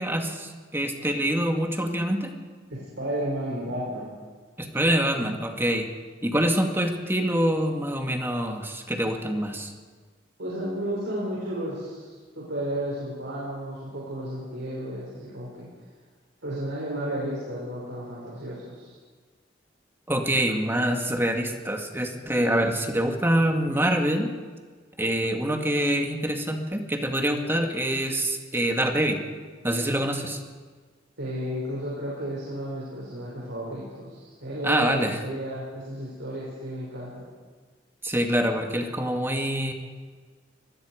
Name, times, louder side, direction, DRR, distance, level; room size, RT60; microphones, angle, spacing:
voice 1, 0.0-2.3 4.6-5.9 6.2-9.7 20.1-24.3 25.0-29.2 29.6-30.4 34.6-35.2 38.0-39.7, right 1 dB, 15° right, 3 dB, 2.1 m, -25 dB
voice 2, 2.7-4.1 10.4-15.7 16.4-18.9 31.2-37.3, right 1 dB, 80° right, -6 dB, 6.4 m, -33 dB
25.5 x 20.5 x 5.1 m, 1.5 s
head